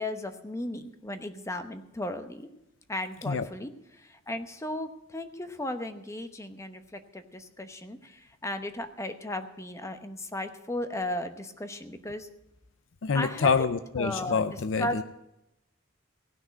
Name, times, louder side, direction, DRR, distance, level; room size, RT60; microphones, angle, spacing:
voice 1, 0.0-2.5 2.9-12.3 13.1-13.5 14.0-14.4 14.8-15.0, left 1 dB, 15° left, 8 dB, 0.9 m, -35 dB
voice 2, 13.0-15.0, left 5 dB, 75° left, 12 dB, 0.5 m, -27 dB
16.0 x 6.2 x 9.2 m, 0.87 s
head